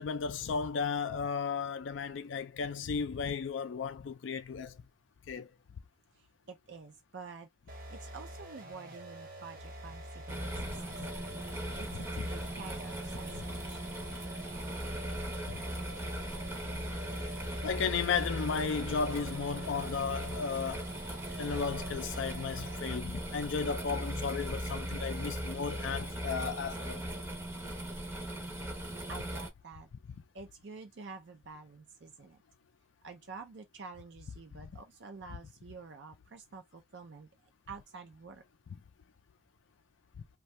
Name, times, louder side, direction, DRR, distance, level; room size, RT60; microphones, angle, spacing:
voice 1, 0.0-4.8 5.3-5.5 10.6-10.7 15.5-15.6 17.6-20.9 21.4-27.0, left 5 dB, 70° left, 0.4 m, -34 dB
voice 2, 6.1-14.0 29.1-29.9 30.3-32.4 33.0-37.3 37.7-38.4, right 4 dB, 60° right, 0.4 m, -49 dB
sound 1, 7.7-23.2, right 1 dB, 45° right, 0.9 m, -47 dB
sound 2, 10.3-29.5, right 1 dB, 10° right, 0.6 m, -39 dB
2.6 x 2.3 x 3.0 m
head